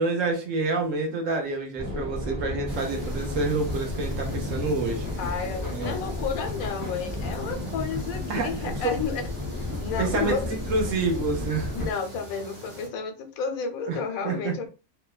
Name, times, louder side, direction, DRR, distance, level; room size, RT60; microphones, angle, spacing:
voice 1, 0.0-5.1 5.7-6.1 8.3-9.0 10.0-11.9 13.9-14.0 14.2-14.5, right 3 dB, 70° right, 1.1 m, -28 dB
sound 1, 1.8-11.9, left 2 dB, 10° left, 0.5 m, -33 dB
sound 2, 2.7-12.9, left 1 dB, 40° right, 1.0 m, -41 dB
voice 2, 5.2-9.2 9.5-10.5 11.7-14.7, left 6 dB, 90° left, 1.0 m, -31 dB
2.8 x 2.2 x 2.2 m
omnidirectional pair, 1.4 m